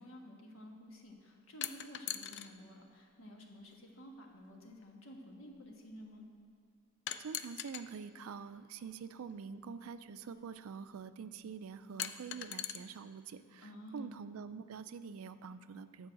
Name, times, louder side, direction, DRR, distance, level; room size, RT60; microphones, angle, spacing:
voice 1, 0.0-6.3 13.6-14.1, equal, 70° left, 0 dB, 1.4 m, -52 dB
sound 1, 1.6-2.5 3.7-3.8 7.1-7.9 9.3-9.4 12.0-12.8, left 11 dB, 55° left, 0.4 m, -40 dB
voice 2, 7.2-16.1, right 6 dB, 90° right, 13 dB, 0.4 m, -46 dB
10.0 x 4.7 x 7.6 m, 2.3 s
head